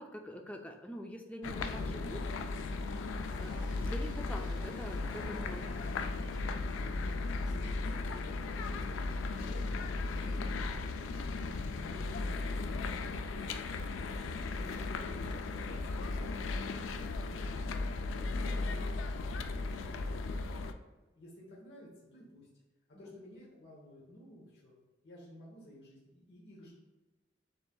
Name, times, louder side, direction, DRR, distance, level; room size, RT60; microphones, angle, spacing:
voice 1, 0.0-2.2 3.1-6.3 22.9-23.2, equal, 5° left, 2 dB, 0.3 m, -46 dB
sound 1, 1.4-20.7, left 3 dB, 90° left, 0.3 m, -36 dB
voice 2, 1.4-1.9 7.4-16.3 16.8-22.5 22.9-24.8 25.0-26.7, left 1 dB, 60° left, -5 dB, 1.0 m, -55 dB
Boom, 3.2-8.8, right 1 dB, 45° right, 0.9 m, -51 dB
6.8 x 3.2 x 2.2 m, 1.2 s
head